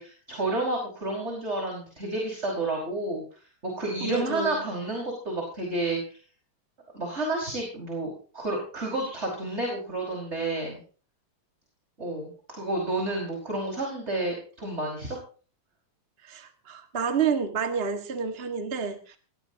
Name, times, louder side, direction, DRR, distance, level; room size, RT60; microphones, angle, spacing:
voice 1, 0.0-3.2 3.6-6.2 6.9-10.8 12.0-15.2, right 2 dB, 15° right, 0 dB, 5.4 m, -30 dB
voice 2, 4.0-4.7 16.2-19.2, right 6 dB, 35° right, 6 dB, 0.9 m, -29 dB
21.5 x 16.5 x 2.9 m, 0.39 s
omnidirectional pair, 4.0 m